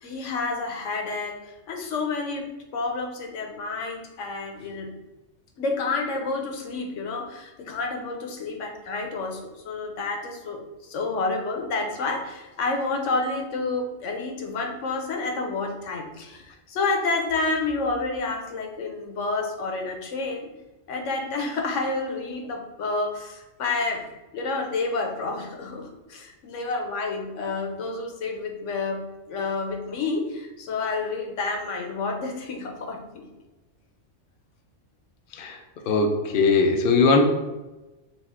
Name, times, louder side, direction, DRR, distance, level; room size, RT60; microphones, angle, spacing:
voice 1, 0.0-4.9 5.6-10.6 10.9-20.5 20.9-33.2, left 3 dB, 80° left, 2 dB, 1.0 m, -29 dB
voice 2, 35.9-37.4, left 3 dB, 60° left, 3 dB, 0.7 m, -20 dB
4.2 x 2.3 x 4.1 m, 1.1 s
omnidirectional pair, 1.3 m